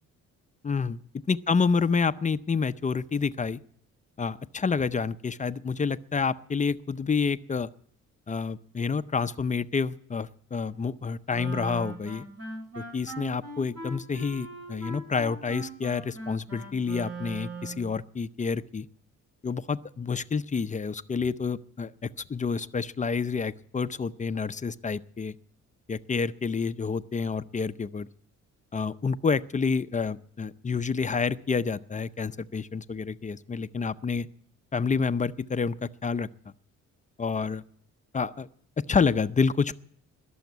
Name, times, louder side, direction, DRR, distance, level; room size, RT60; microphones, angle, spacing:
voice 1, 0.6-1.0 1.3-3.6 4.2-7.7 8.3-12.2 12.8-18.9 19.4-25.3 25.9-28.1 28.7-34.3 34.7-36.3 37.2-37.6 38.1-38.5 38.9-39.7, left 5 dB, 25° left, 13 dB, 0.6 m, -28 dB
Wind instrument woodwind instrument, 11.3-17.9, right 2 dB, 50° right, 7.0 m, -40 dB
21.0 x 7.2 x 9.3 m, 0.63 s
cardioid pair, 90°, 30 cm